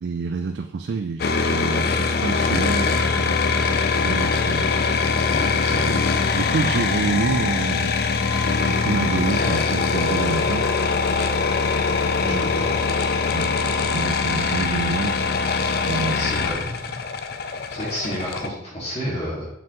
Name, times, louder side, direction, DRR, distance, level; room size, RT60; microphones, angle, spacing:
voice 1, 0.0-3.4 4.0-4.7 5.5-6.0 6.3-7.9 8.6-10.7 12.2-12.5 13.3-15.2 15.9-16.3, right 4 dB, 70° right, 7 dB, 0.4 m, -28 dB
sound 1, 1.2-18.5, left 4 dB, 55° left, 0.5 m, -22 dB
voice 2, 5.3-5.9 12.2-12.8 16.1-17.0 17.4-19.5, equal, 35° left, -6 dB, 2.0 m, -31 dB
7.2 x 5.8 x 3.0 m, 0.76 s
head